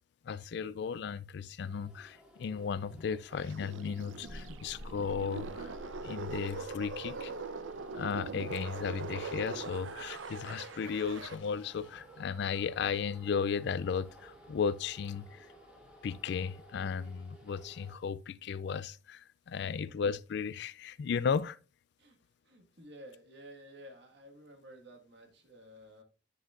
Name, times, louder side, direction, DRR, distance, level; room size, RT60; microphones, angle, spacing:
voice 1, 0.2-5.7 6.0-7.3 7.9-15.5 16.0-21.6, left 6 dB, 60° left, 0.3 m, -35 dB
sound 1, 1.7-17.9, right 1 dB, 5° right, 2.3 m, -55 dB
sound 2, 3.3-11.4, right 4 dB, 80° right, 0.6 m, -42 dB
sound 3, 4.2-12.0, left 1 dB, 75° left, 0.8 m, -52 dB
voice 2, 22.4-26.0, equal, 60° right, 1.7 m, -53 dB
9.1 x 6.5 x 2.4 m
head